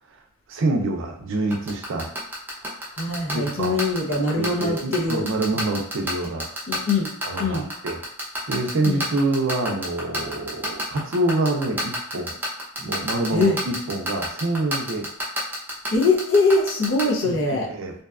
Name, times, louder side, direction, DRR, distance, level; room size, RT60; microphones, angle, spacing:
voice 1, 0.5-2.1 3.3-3.8 4.4-6.5 7.2-8.0 8.5-12.3 12.8-15.1 17.2-17.3 17.7-17.9, right 2 dB, 60° right, 3 dB, 0.4 m, -26 dB
sound 1, 1.5-17.0, equal, 10° right, 0.5 m, -28 dB
voice 2, 3.0-5.2 6.7-7.1 7.4-7.7 8.8-9.0 13.3-13.6 15.9-17.7, left 3 dB, 65° left, 0 dB, 0.6 m, -22 dB
2.6 x 2.2 x 2.3 m, 0.68 s
head